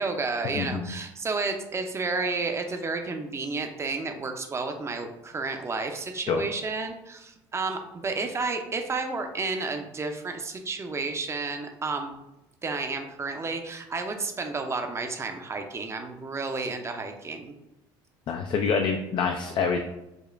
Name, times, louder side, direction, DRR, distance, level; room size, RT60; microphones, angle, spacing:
voice 1, 0.0-12.2 12.6-17.6, right 3 dB, 25° right, 5 dB, 0.5 m, -31 dB
voice 2, 0.5-0.9 6.3-6.4 18.3-19.8, left 5 dB, 50° left, 4 dB, 0.4 m, -26 dB
5.0 x 2.1 x 2.5 m, 0.91 s
supercardioid pair, 80°, 11 cm